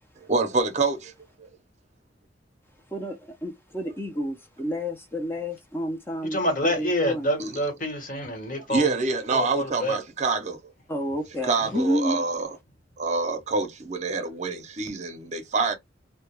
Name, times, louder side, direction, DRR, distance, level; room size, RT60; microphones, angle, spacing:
voice 1, 0.3-1.1 1.4-1.5 7.4-7.5 8.7-10.6 11.4-12.6 13.0-15.7, right 4 dB, 40° right, 0.6 m, -26 dB
voice 2, 2.9-7.3 10.9-12.2, equal, 10° left, 0.5 m, -30 dB
voice 3, 6.2-9.0 9.3-10.0 11.6-11.8, left 1 dB, 50° left, 1.2 m, -27 dB
2.2 x 2.1 x 3.0 m
head